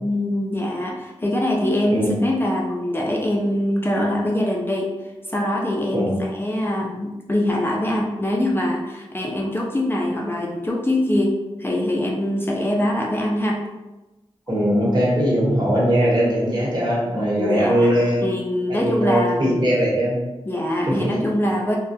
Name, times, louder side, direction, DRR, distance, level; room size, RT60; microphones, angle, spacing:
voice 1, 0.0-4.9 5.3-13.7 17.1-19.6 20.5-21.8, left 1 dB, 20° left, -2 dB, 0.4 m, -23 dB
voice 2, 1.9-2.2 5.9-6.2 14.5-18.2 18.7-20.2 21.0-21.1, equal, 45° right, -6 dB, 1.1 m, -20 dB
2.7 x 2.1 x 2.2 m, 1.0 s
wide cardioid pair, 50°, 10 cm